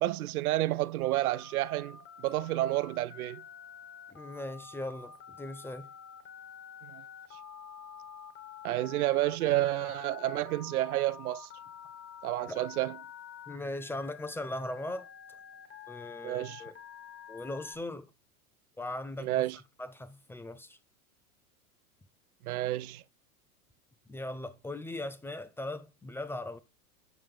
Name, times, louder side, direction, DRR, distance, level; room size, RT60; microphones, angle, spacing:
voice 1, 0.0-3.4 6.9-7.0 8.6-11.5 12.2-13.0 16.2-16.6 19.2-19.6 22.4-23.0, right 16 dB, 75° right, 0.6 m, -30 dB
Telephone, 1.0-17.8, left 8 dB, 25° left, 1.9 m, -48 dB
voice 2, 4.1-5.9 12.5-12.6 13.5-15.1 15.9-16.8 17.3-18.1 18.8-19.3 19.8-20.8 24.1-26.6, left 1 dB, 5° left, 0.4 m, -39 dB
7.8 x 5.7 x 4.9 m
hypercardioid pair, 110°, 44 cm